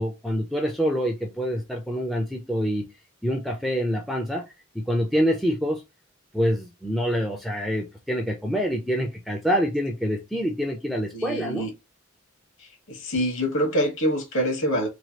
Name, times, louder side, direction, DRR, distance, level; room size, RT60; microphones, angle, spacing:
voice 1, 0.0-2.8 3.2-4.4 4.7-5.8 6.3-11.7, equal, ahead, 0.4 m, -26 dB
voice 2, 11.1-11.7 12.6-14.9, equal, 60° left, 1.3 m, -26 dB
3.1 x 2.3 x 2.8 m
head